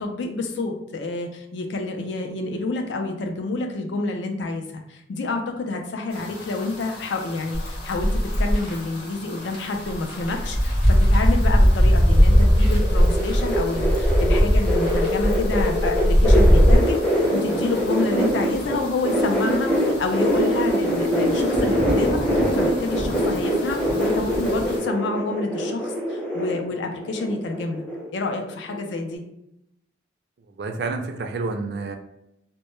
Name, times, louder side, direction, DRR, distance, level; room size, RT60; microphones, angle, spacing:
voice 1, 0.0-8.1 8.4-17.0 17.3-27.8 28.1-29.2, left 3 dB, 80° left, 4 dB, 0.4 m, -28 dB
sound 1, 6.1-24.8, left 1 dB, 60° left, 0.8 m, -36 dB
sound 2, 7.5-8.7 9.4-9.6 9.9-16.8, equal, 30° left, 0.9 m, -18 dB
sound 3, 12.1-18.8 19.0-28.1 28.3-28.8 29.1-29.2, equal, 10° left, 0.4 m, -24 dB
voice 2, 30.6-32.0, right 3 dB, 60° right, 5 dB, 0.3 m, -29 dB
2.1 x 2.1 x 3.0 m, 0.80 s
head